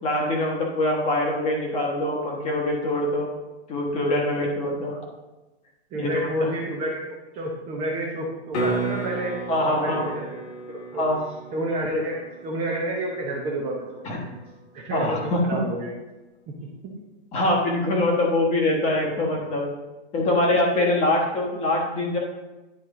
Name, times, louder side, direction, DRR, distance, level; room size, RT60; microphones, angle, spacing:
voice 1, 0.0-3.3 3.7-5.0 5.9-6.5 9.5-10.1 10.9-11.2 14.0-14.2 14.9-15.4 17.3-19.7 20.1-22.2, left 1 dB, 20° left, -1 dB, 1.2 m, -24 dB
voice 2, 5.9-9.3 9.7-11.0 11.5-14.3 14.7-15.9, right 1 dB, 20° right, -2 dB, 0.8 m, -30 dB
sound 1, 8.5-14.6 19.2-19.3, right 2 dB, 85° left, 1.7 m, -34 dB
10.0 x 4.3 x 3.7 m, 1.1 s
hypercardioid pair, 155°, 34 cm